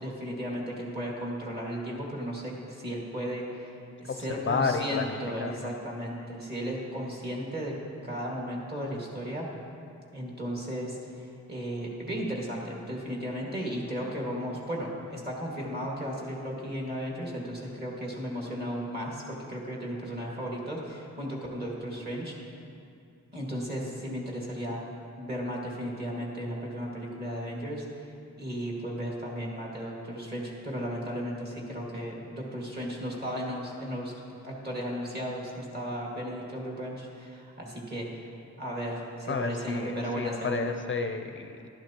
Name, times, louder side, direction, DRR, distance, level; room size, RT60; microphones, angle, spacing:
voice 1, 0.0-3.7 4.0-7.7 8.0-9.5 10.1-22.3 23.3-24.8 25.2-28.1 28.4-34.1 34.4-38.3 38.6-40.8, equal, 35° right, -3 dB, 2.0 m, -35 dB
voice 2, 4.1-5.7 39.3-41.7, left 4 dB, 40° left, 6 dB, 0.4 m, -31 dB
12.0 x 11.0 x 2.9 m, 2.5 s
wide cardioid pair, 120°, 30 cm